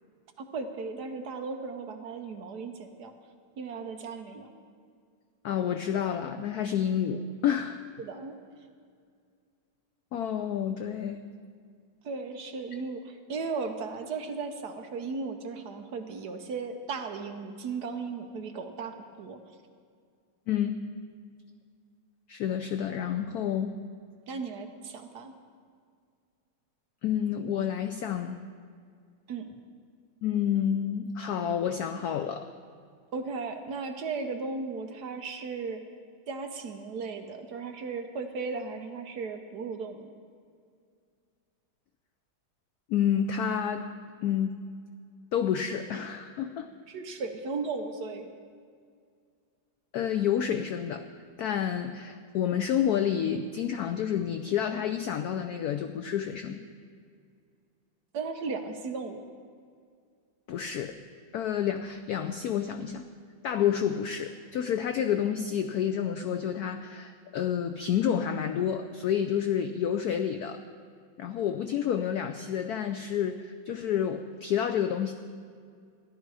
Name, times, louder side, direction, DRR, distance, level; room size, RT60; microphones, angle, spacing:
voice 1, 0.4-3.1 3.6-4.5 8.0-8.4 12.0-19.5 24.3-25.3 29.3-29.5 33.1-35.8 36.3-40.1 46.9-48.3 58.1-59.2, right 4 dB, 60° right, 5 dB, 1.3 m, -36 dB
voice 2, 5.4-7.8 10.1-11.2 20.5-20.8 22.3-23.7 27.0-28.4 30.2-32.5 42.9-43.9 44.2-44.6 45.3-46.7 49.9-51.1 51.4-56.6 60.5-60.9 61.3-63.1 63.4-70.6 71.2-75.1, left 9 dB, 80° left, 8 dB, 0.8 m, -29 dB
14.5 x 11.0 x 4.8 m, 2.1 s
omnidirectional pair, 2.2 m